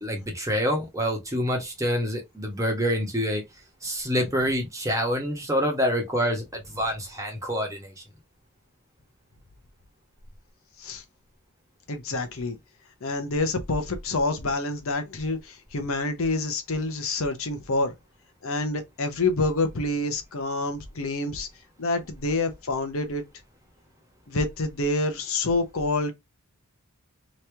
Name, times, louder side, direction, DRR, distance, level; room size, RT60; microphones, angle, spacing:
voice 1, 0.0-3.4 3.8-8.0, equal, 15° right, 1.2 m, -27 dB
voice 2, 11.9-12.6 13.0-17.9 18.4-21.5 21.8-23.2 24.3-26.1, left 2 dB, 65° left, 0.8 m, -27 dB
3.1 x 2.9 x 3.3 m
head